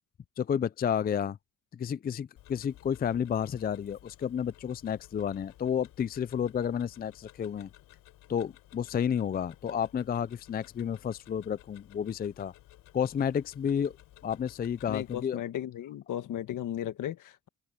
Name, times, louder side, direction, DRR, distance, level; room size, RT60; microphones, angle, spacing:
voice 1, 0.4-1.4 1.7-7.7 8.3-12.5 12.9-14.0 14.2-15.4, left 8 dB, 30° left, 0.5 m, -31 dB
Tick-tock, 2.4-15.2, left 15 dB, 90° left, 4.2 m, -56 dB
voice 2, 14.9-17.5, left 11 dB, 75° left, 1.9 m, -35 dB
open air
cardioid pair, 105°, 31 cm